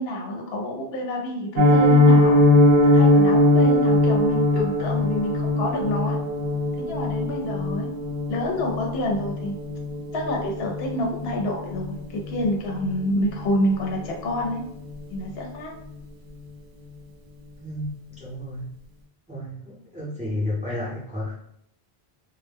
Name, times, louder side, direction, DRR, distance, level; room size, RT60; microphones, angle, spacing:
voice 1, 0.0-2.4 2.8-6.2 6.8-7.9 8.3-9.6 10.1-14.6 15.1-15.7, left 1 dB, 75° left, 0 dB, 0.8 m, -28 dB
Piano, 1.6-12.5 12.7-12.9 13.3-13.4 13.8-14.0 14.3-14.4, left 1 dB, 75° right, 0.8 m, -20 dB
voice 2, 17.6-18.7 19.3-21.3, left 1 dB, 10° right, -7 dB, 0.6 m, -32 dB
2.1 x 2.0 x 3.3 m, 0.72 s
omnidirectional pair, 1.1 m